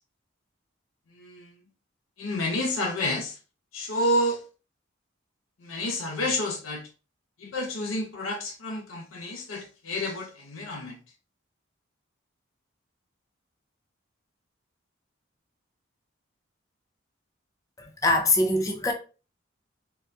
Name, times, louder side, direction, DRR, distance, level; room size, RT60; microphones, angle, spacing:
voice 1, 1.1-1.5 2.2-3.4 3.7-4.4 5.6-6.9 7.4-11.0, left 1 dB, 85° left, 0.6 m, -29 dB
voice 2, 17.8-18.9, left 2 dB, 15° left, 0.4 m, -23 dB
3.5 x 2.2 x 2.6 m
head